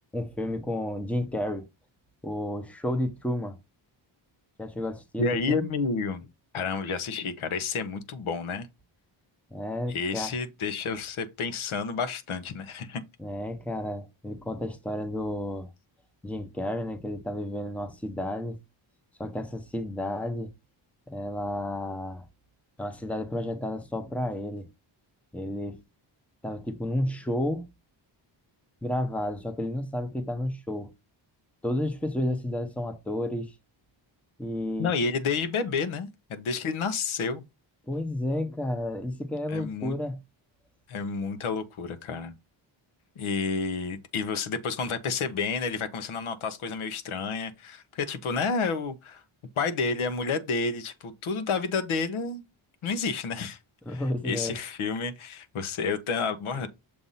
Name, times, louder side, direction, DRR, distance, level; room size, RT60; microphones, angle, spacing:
voice 1, 0.1-1.7 2.2-3.6 4.6-5.6 9.5-10.3 13.2-15.7 16.2-18.6 19.2-20.5 21.1-22.2 22.8-24.7 25.3-25.8 26.4-27.7 28.8-30.9 31.6-33.5 34.4-34.9 37.9-40.2 53.9-54.6, left 1 dB, 5° left, 0.7 m, -31 dB
voice 2, 5.2-6.3 6.5-8.7 9.9-13.0 34.8-37.4 39.5-40.0 40.9-42.3 43.2-49.2 49.6-52.4 52.8-53.6 53.9-56.7, left 4 dB, 85° left, 1.1 m, -30 dB
6.8 x 2.6 x 5.5 m
wide cardioid pair, 155°, 48 cm